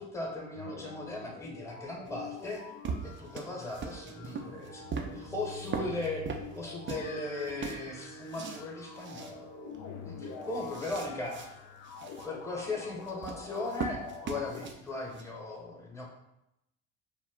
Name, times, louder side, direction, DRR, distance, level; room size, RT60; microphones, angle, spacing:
voice 1, 0.0-2.6 3.0-6.3 6.5-9.5 10.0-11.4 12.2-16.1, left 2 dB, 10° left, -2 dB, 0.9 m, -38 dB
sound 1, 0.6-14.7, left 6 dB, 55° left, 0.5 m, -47 dB
sound 2, 2.1-7.1 7.4-8.7 9.0-9.3 9.7-9.8 10.2-11.5 11.8-12.3 13.0-15.2, right 5 dB, 35° right, 0.4 m, -40 dB
sound 3, 3.8-10.9, right 4 dB, 75° right, 0.7 m, -52 dB
2.3 x 2.0 x 3.6 m, 0.85 s
hypercardioid pair, 60°, 36 cm